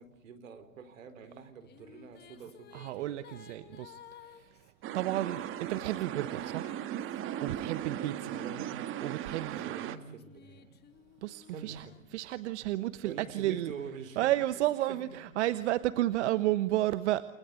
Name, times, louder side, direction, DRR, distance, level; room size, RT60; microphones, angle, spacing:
voice 1, 0.0-3.1 8.2-8.7 9.5-10.8 11.5-12.0 13.0-14.6 14.9-15.0, right 6 dB, 75° right, 12 dB, 4.3 m, -46 dB
Female singing, 1.3-8.3 9.0-12.7, left 8 dB, 25° left, 2.2 m, -56 dB
voice 2, 2.7-4.6 4.9-6.7 7.4-8.3 9.0-9.7 11.2-11.8 12.1-13.7 14.2-17.2, right 15 dB, 60° right, 14 dB, 1.2 m, -32 dB
sound 1, 4.8-10.0, right 11 dB, 30° right, 1.8 m, -37 dB
29.5 x 21.5 x 8.3 m, 1.0 s
hypercardioid pair, 120°, 39 cm